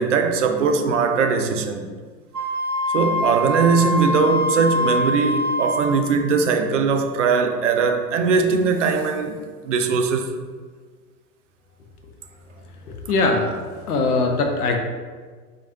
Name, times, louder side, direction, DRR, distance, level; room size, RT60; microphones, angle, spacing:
voice 1, 0.0-1.8 2.9-9.4 9.7-10.3, right 5 dB, 55° right, 0.5 m, -20 dB
Wind instrument woodwind instrument, 2.3-6.1, left 1 dB, 90° right, 0.7 m, -24 dB
voice 2, 12.9-13.6 13.9-14.8, left 3 dB, 70° left, 0.7 m, -21 dB
4.5 x 2.4 x 2.7 m
figure-of-eight pair, 100°, 47 cm